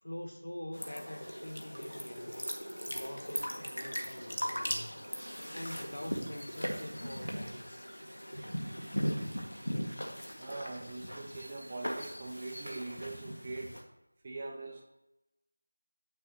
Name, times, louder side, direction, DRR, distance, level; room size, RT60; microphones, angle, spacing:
voice 1, 0.0-2.4 2.9-5.0 5.5-7.9, left 1 dB, 60° left, 0.9 m, -45 dB
sound 1, 0.7-13.8, equal, 80° left, 1.7 m, -39 dB
voice 2, 10.4-13.8 14.2-14.8, right 2 dB, 20° right, 0.6 m, -42 dB
9.0 x 6.5 x 2.9 m
figure-of-eight pair, 170°, 0 cm